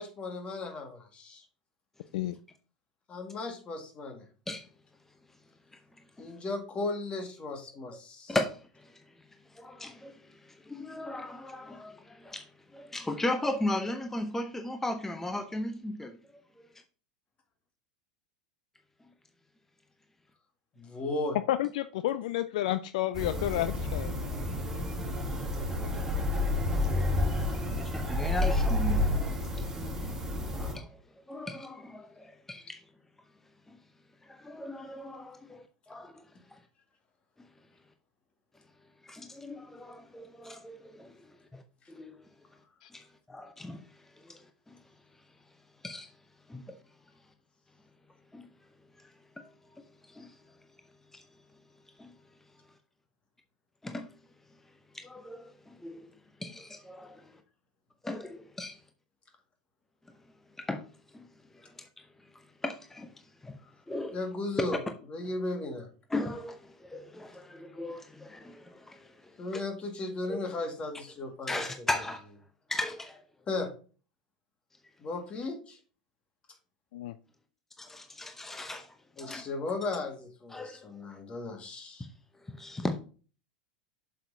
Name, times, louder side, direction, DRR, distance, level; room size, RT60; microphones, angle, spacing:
voice 1, 0.0-1.4 3.1-4.2 6.2-8.4 20.8-21.4 64.1-64.8 65.1-65.9 69.4-71.9 73.5-73.7 75.0-75.8 79.2-82.0, left 2 dB, 25° left, 2.0 m, -36 dB
voice 2, 8.3-9.0 9.5-12.5 12.7-16.2 25.6-25.7 27.8-29.0 30.5-31.0 31.3-32.8 33.7-33.8 34.3-36.2 39.0-41.1 41.5-41.6 41.9-42.1 42.9-43.8 44.2-44.4 44.7-44.8 45.8-46.1 46.5-46.8 48.3-48.5 49.8-50.3 51.1-51.2 52.0-52.1 53.8-54.1 54.9-56.1 56.4-57.3 58.0-58.8 60.6-60.8 61.1-61.3 61.5-62.0 62.6-63.1 63.4-63.5 63.9-64.1 66.1-69.1 69.5-69.6 70.3-70.4 71.5-72.2 72.7-73.2 77.8-79.4 80.5-80.8 82.5-83.0, left 1 dB, 10° left, 0.8 m, -37 dB
voice 3, 21.5-24.3 42.8-42.9 76.9-77.1, left 14 dB, 60° left, 0.4 m, -31 dB
sound 1, 23.1-30.7, left 1 dB, 10° right, 2.9 m, -30 dB
7.7 x 6.3 x 2.8 m
figure-of-eight pair, 85°, 4 cm